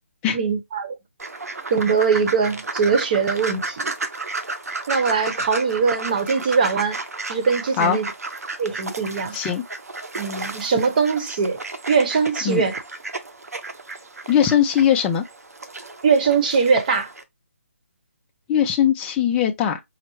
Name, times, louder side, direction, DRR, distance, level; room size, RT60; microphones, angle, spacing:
voice 1, 0.3-0.9 1.7-3.9 4.9-7.0 7.3-8.1 8.6-9.4 10.1-11.6 11.9-12.8 16.0-17.1, right 5 dB, 35° right, 0.9 m, -21 dB
sound 1, 1.2-17.2, right 3 dB, 85° right, 0.9 m, -33 dB
voice 2, 9.3-9.6 12.5-12.6 14.3-15.2 18.5-19.8, left 9 dB, 10° left, 0.4 m, -20 dB
5.6 x 2.0 x 3.0 m
hypercardioid pair, 160°, 8 cm